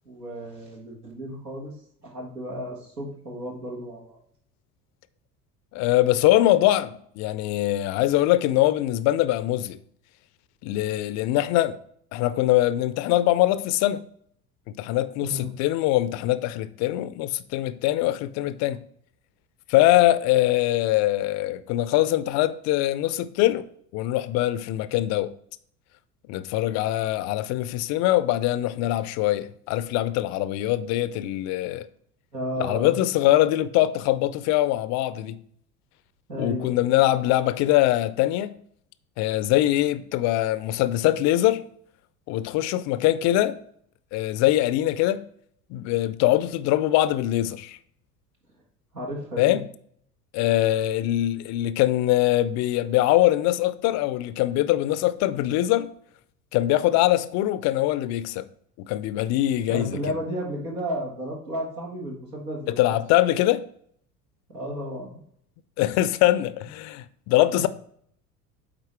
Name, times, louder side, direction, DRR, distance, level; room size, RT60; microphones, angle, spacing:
voice 1, 0.1-1.7 2.0-4.2 15.2-15.6 32.3-33.0 36.3-36.9 48.9-49.6 59.7-63.0 64.5-65.2, equal, 85° right, 1.9 m, -33 dB
voice 2, 5.7-9.8 10.6-11.8 12.1-14.0 14.8-18.8 19.7-23.7 23.9-25.3 26.3-31.9 32.6-35.4 36.4-38.5 39.2-41.6 42.3-43.6 44.1-45.2 45.7-47.8 49.4-49.6 50.3-55.9 56.5-58.4 58.8-60.0 62.8-63.6 65.8-67.7, left 15 dB, 40° left, 0.4 m, -23 dB
8.8 x 3.9 x 3.4 m
figure-of-eight pair, 70°, 47 cm